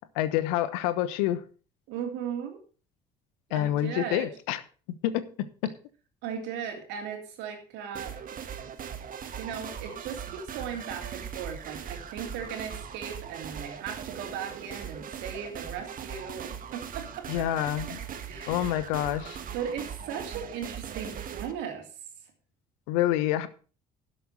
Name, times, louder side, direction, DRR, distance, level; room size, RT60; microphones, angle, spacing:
voice 1, 0.1-1.4 3.5-4.6 5.0-5.7 17.3-18.0 18.5-19.4 22.9-23.5, left 13 dB, 75° left, 1.0 m, -27 dB
voice 2, 1.9-2.6 3.5-4.3 6.2-8.6 9.4-17.5 18.1-18.8 19.5-21.9, right 7 dB, 70° right, 3.0 m, -37 dB
sound 1, 7.9-21.5, right 8 dB, 50° right, 1.5 m, -40 dB
11.5 x 7.7 x 5.5 m
hypercardioid pair, 60°, 19 cm